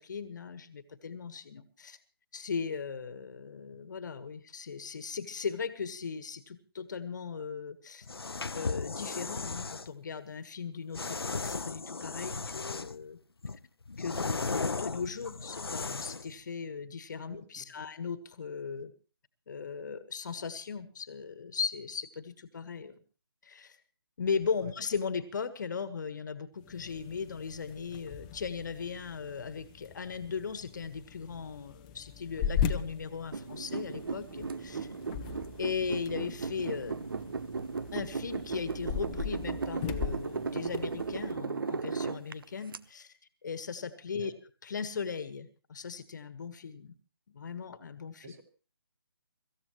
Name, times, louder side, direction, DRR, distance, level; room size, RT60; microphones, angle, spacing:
voice 1, 0.0-2.0 2.3-8.1 8.5-13.2 14.0-18.9 19.5-23.0 23.4-23.8 24.2-34.9 35.6-37.1 37.9-43.1 43.4-44.3 44.6-46.9 47.3-48.3, left 5 dB, 50° left, 12 dB, 1.5 m, -38 dB
sound 1, 8.0-9.9 10.9-13.0 13.4-16.3, left 4 dB, 75° left, 0.7 m, -36 dB
voice 2, 17.3-17.8 44.2-44.3 48.2-48.4, right 4 dB, 35° right, 6 dB, 2.7 m, -51 dB
sound 2, 26.6-41.4, left 8 dB, 20° left, 0.7 m, -39 dB
sound 3, 33.3-42.8, right 4 dB, 65° right, 0.7 m, -36 dB
25.0 x 15.0 x 3.1 m, 0.35 s
figure-of-eight pair, 145°, 13 cm